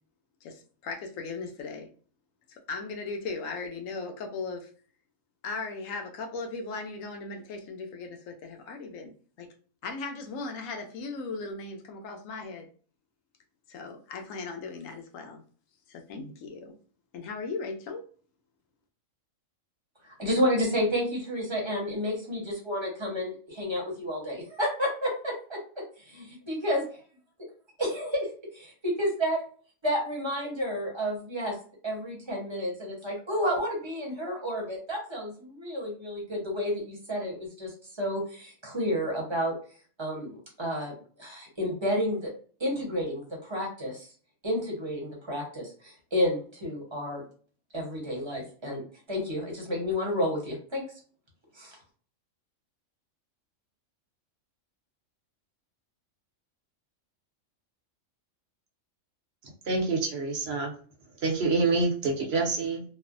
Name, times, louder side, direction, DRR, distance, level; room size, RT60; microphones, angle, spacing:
voice 1, 0.4-1.9 2.7-4.7 5.4-9.1 9.4-9.5 9.8-12.7 13.7-15.4 15.9-16.7 17.1-18.0, left 4 dB, 85° left, 4 dB, 1.0 m, -37 dB
voice 2, 20.0-25.6 26.5-26.8 27.8-28.1 28.8-29.4 29.8-31.6 31.8-39.5 40.0-42.3 42.6-44.1 44.4-47.2 47.7-48.8 49.1-50.9 51.5-51.8, equal, 25° right, -1 dB, 0.8 m, -30 dB
voice 3, 59.4-60.7 61.2-62.8, right 3 dB, 55° right, 1 dB, 0.9 m, -27 dB
3.0 x 2.0 x 2.4 m, 0.42 s
omnidirectional pair, 1.4 m